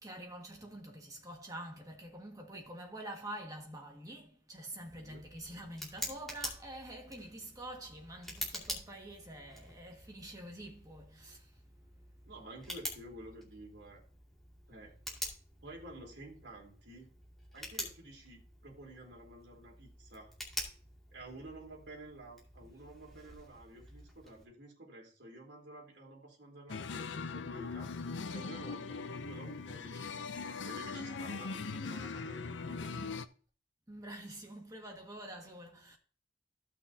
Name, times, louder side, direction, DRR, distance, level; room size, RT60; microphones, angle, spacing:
voice 1, 0.0-11.6 30.9-31.7 33.9-36.0, right 1 dB, 20° right, 1.8 m, -47 dB
Tick, 4.8-24.4, equal, ahead, 2.4 m, -47 dB
voice 2, 12.3-14.0 14.7-15.0 15.6-17.1 17.5-20.3 21.1-28.0 28.3-30.1 30.5-33.2, right 1 dB, 65° right, 3.2 m, -51 dB
sound 1, 26.7-33.3, left 4 dB, 75° left, 0.6 m, -40 dB
15.5 x 6.0 x 2.8 m
head